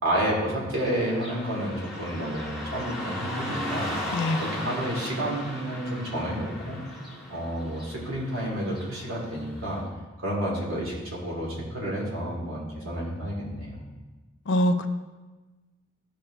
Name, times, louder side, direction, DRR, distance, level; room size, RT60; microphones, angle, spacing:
voice 1, 0.0-3.9 4.4-6.8 7.3-9.8 10.2-13.7, right 1 dB, 85° right, -4 dB, 2.8 m, -30 dB
Car passing by / Traffic noise roadway noise, 0.8-9.8, left 1 dB, ahead, 2.0 m, -37 dB
voice 2, 14.5-14.9, left 1 dB, 65° left, 8 dB, 0.6 m, -23 dB
14.0 x 5.0 x 3.3 m, 1.2 s
head